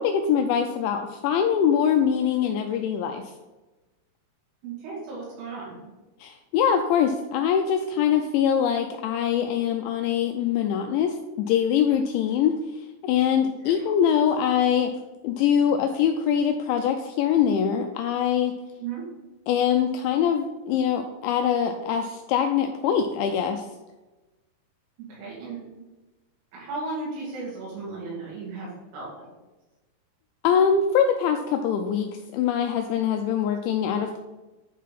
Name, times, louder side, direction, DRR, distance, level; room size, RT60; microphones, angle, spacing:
voice 1, 0.0-3.2 6.2-12.6 13.0-14.9 15.2-18.5 19.5-23.6 30.4-34.2, left 8 dB, 85° left, 5 dB, 2.6 m, -23 dB
voice 2, 4.6-5.8 13.4-13.9 18.8-19.0 25.0-25.6 26.5-29.3, right 3 dB, 85° right, -8 dB, 5.4 m, -35 dB
11.0 x 3.7 x 5.9 m, 1.1 s
omnidirectional pair, 5.8 m